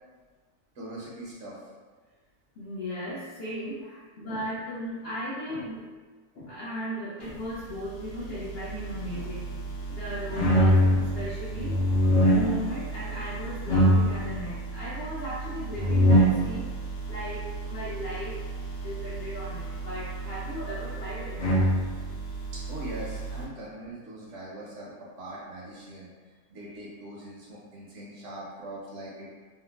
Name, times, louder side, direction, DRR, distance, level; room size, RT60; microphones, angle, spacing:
voice 1, 0.8-1.6 22.7-26.1 26.5-29.3, right 1 dB, 65° right, -5 dB, 0.9 m, -41 dB
voice 2, 2.6-5.9 6.3-9.5 9.9-21.4 23.4-23.5, equal, 65° left, -8 dB, 0.6 m, -36 dB
sound 1, 8.0-23.4, equal, 85° left, 1.2 m, -26 dB
3.6 x 2.1 x 2.2 m, 1.4 s
omnidirectional pair, 1.6 m